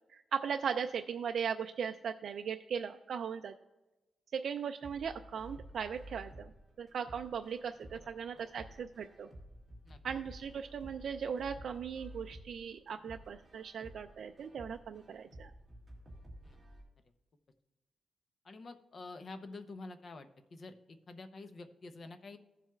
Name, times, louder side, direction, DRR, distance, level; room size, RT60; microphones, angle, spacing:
voice 1, 0.1-3.5 4.3-6.5 6.8-9.3 10.0-15.5, right 7 dB, 60° right, 6 dB, 0.3 m, -38 dB
sound 1, 4.8-16.8, equal, 15° right, 2.2 m, -53 dB
voice 2, 7.9-8.5 9.8-10.0 16.4-16.6 18.4-22.4, left 3 dB, 40° left, 8 dB, 0.7 m, -49 dB
15.5 x 7.4 x 2.3 m, 1.1 s
wide cardioid pair, 155°, 0 cm